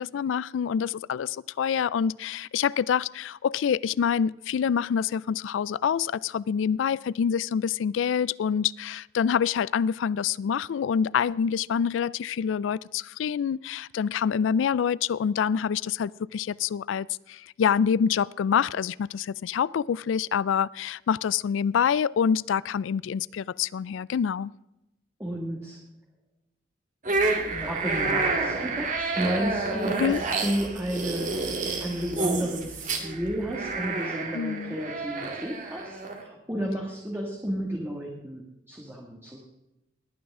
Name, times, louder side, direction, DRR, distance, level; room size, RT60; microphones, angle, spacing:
voice 1, 0.0-24.5 30.0-30.2 34.3-34.8, left 7 dB, 85° left, 0.3 m, -26 dB
voice 2, 25.2-25.8 27.5-39.4, equal, 15° right, 1.9 m, -32 dB
sound 1, 27.0-36.2, right 3 dB, 40° right, 2.1 m, -29 dB
20.5 x 9.4 x 3.7 m
head